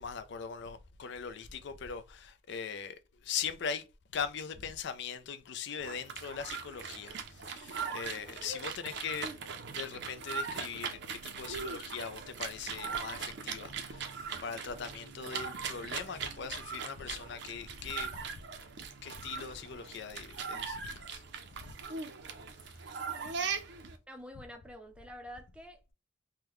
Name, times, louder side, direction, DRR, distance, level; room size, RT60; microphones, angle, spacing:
voice 1, 0.0-3.9 4.1-9.3 9.7-18.4 19.0-21.2 21.6-21.7 22.6-22.8, left 6 dB, 60° left, 0.4 m, -40 dB
sound 1, 5.8-24.0, right 6 dB, 60° right, 0.5 m, -40 dB
voice 2, 24.1-25.8, equal, 5° right, 0.5 m, -47 dB
3.6 x 2.1 x 3.0 m
head